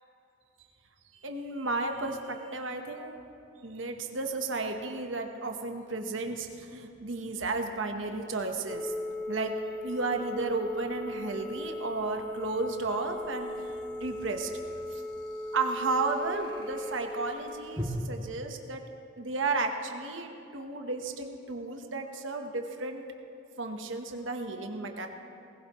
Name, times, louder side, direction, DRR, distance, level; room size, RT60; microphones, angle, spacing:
voice 1, 1.2-3.2 3.6-8.9 9.3-9.5 9.8-13.5 14.0-14.5 14.9-15.0 15.5-18.8 19.2-23.0 23.6-25.1, right 3 dB, 75° right, 4 dB, 1.1 m, -33 dB
sound 1, 4.2-4.3 7.7-17.8, equal, 25° right, 2.4 m, -49 dB
Telephone, 8.7-17.0, left 1 dB, 10° left, 3.1 m, -38 dB
19.0 x 16.5 x 3.1 m, 2.8 s
head